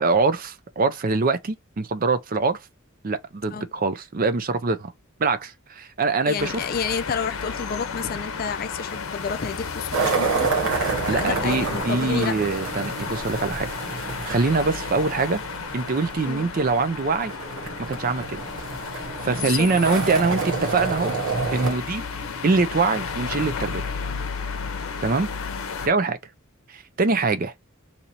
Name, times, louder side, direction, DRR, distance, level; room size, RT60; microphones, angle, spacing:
voice 1, 0.0-2.6 3.0-4.9 5.2-6.6 11.1-13.7 14.2-15.4 15.7-17.3 17.8-18.4 19.2-21.1 21.5-22.0 22.4-23.9 25.0-25.3 25.8-26.2 26.7-27.5, right 4 dB, 40° right, 0.5 m, -23 dB
voice 2, 6.3-10.5 11.1-12.4 16.2-16.5 19.3-19.7, left 6 dB, 45° left, 0.4 m, -30 dB
sound 1, 6.4-25.9, left 5 dB, 85° left, 0.7 m, -33 dB
sound 2, 9.9-21.7, right 4 dB, 75° right, 1.1 m, -29 dB
2.8 x 2.7 x 4.3 m
head